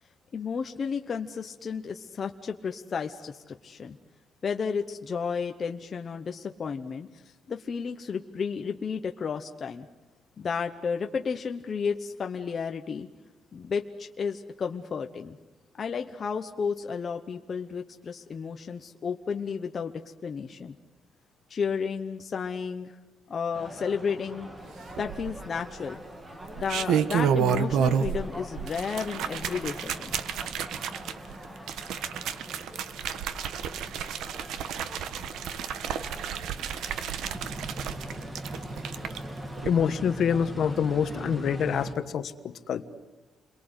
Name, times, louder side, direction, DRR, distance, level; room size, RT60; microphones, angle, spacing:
voice 1, 0.3-4.0 4.4-7.1 7.5-9.9 10.4-13.1 13.5-15.4 15.8-20.8 21.5-23.0 23.3-24.5 25.0-26.0 26.6-30.1, left 6 dB, 30° left, 4 dB, 0.9 m, -32 dB
sound 1, 23.5-42.0, right 1 dB, 10° right, 1.9 m, -42 dB
sound 2, 25.0-25.6 26.4-28.3 28.6-39.2 39.6-39.7, right 8 dB, 85° right, 1.3 m, -30 dB
voice 2, 39.6-42.9, left 7 dB, 50° left, 10 dB, 1.4 m, -26 dB
29.5 x 23.0 x 8.1 m, 1.2 s
cardioid pair, 175°, 0 cm